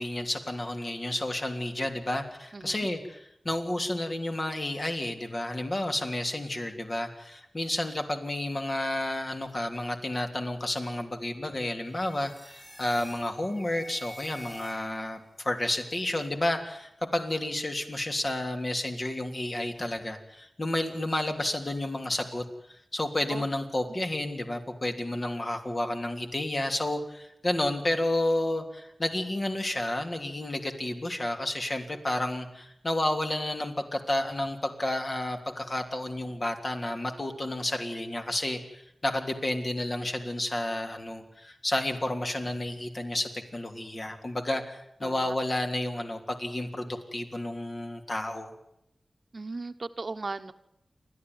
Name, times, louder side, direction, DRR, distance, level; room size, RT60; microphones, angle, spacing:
voice 1, 0.0-48.5, left 1 dB, 40° left, 5 dB, 3.3 m, -31 dB
voice 2, 2.5-2.9 23.3-23.4 45.0-45.3 49.3-50.5, right 3 dB, 50° right, 8 dB, 1.1 m, -37 dB
sound 1, 11.8-15.2, equal, 20° left, 6.5 m, -47 dB
29.0 x 13.0 x 9.6 m, 0.82 s
wide cardioid pair, 85°, 0 cm